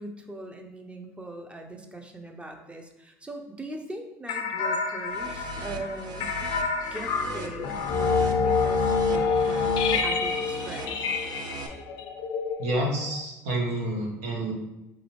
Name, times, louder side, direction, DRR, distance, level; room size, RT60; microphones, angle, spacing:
voice 1, 0.0-6.3 6.9-9.7 10.0-11.1, right 2 dB, 15° right, 4 dB, 0.5 m, -40 dB
sound 1, 4.3-13.2, left 5 dB, 65° left, 0.4 m, -27 dB
sound 2, 5.0-11.7, right 4 dB, 60° right, 0.4 m, -40 dB
voice 2, 12.6-14.5, right 1 dB, 85° right, -1 dB, 0.8 m, -29 dB
3.4 x 2.6 x 3.0 m, 0.92 s
supercardioid pair, 75°, 8 cm